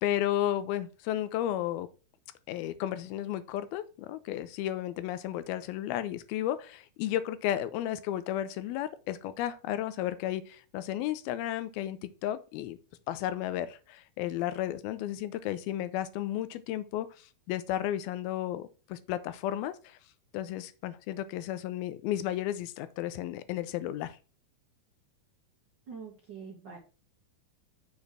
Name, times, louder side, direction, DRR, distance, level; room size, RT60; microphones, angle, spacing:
voice 1, 0.0-1.9 2.5-12.8 13.1-20.0 20.3-24.2, left 12 dB, 90° left, 2.5 m, -33 dB
voice 2, 25.9-26.8, right 5 dB, 90° right, 0.9 m, -44 dB
7.0 x 4.1 x 6.1 m
omnidirectional pair, 4.3 m